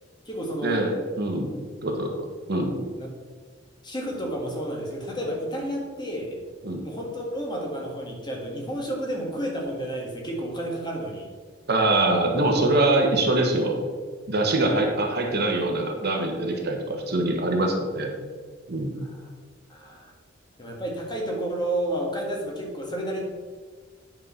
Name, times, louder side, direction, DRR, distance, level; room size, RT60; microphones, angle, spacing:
voice 1, 0.2-0.9 3.0-3.1 3.8-6.4 6.8-11.3 14.4-14.9 19.0-19.3 19.7-20.1 20.6-23.2, right 1 dB, 25° left, -1 dB, 1.8 m, -31 dB
voice 2, 1.2-1.5 1.8-2.1 2.5-2.8 6.6-6.8 11.7-13.8 14.3-18.1 18.7-19.0, right 2 dB, 55° right, 2 dB, 1.4 m, -23 dB
9.4 x 4.8 x 5.7 m, 1.5 s
head